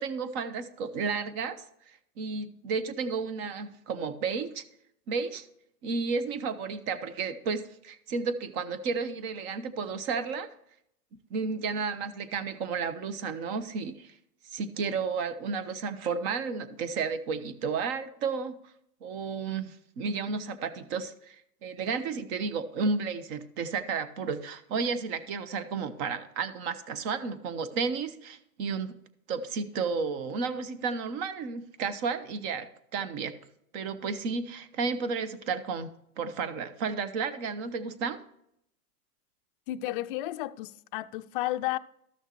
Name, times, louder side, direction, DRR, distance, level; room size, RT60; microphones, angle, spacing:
voice 1, 0.0-1.6 2.2-4.6 5.1-5.4 5.8-10.5 11.3-14.1 14.5-18.5 19.0-21.4 21.6-28.9 29.3-32.7 32.9-33.3 33.7-35.9 36.2-38.2, right 5 dB, 45° right, 1.1 m, -32 dB
voice 2, 39.7-41.8, left 16 dB, 40° left, 0.4 m, -32 dB
13.5 x 6.4 x 3.1 m
hypercardioid pair, 130°, 45 cm